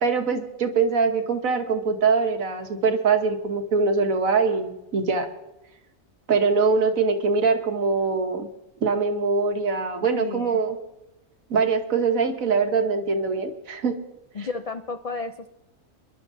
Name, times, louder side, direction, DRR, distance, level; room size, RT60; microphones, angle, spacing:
voice 1, 0.0-5.3 6.3-8.5 8.8-10.8 11.5-14.0, right 4 dB, 85° right, 5 dB, 1.6 m, -23 dB
voice 2, 10.1-10.6 14.3-15.5, left 4 dB, 70° left, 9 dB, 0.3 m, -32 dB
28.5 x 11.0 x 2.7 m, 0.93 s
omnidirectional pair, 1.4 m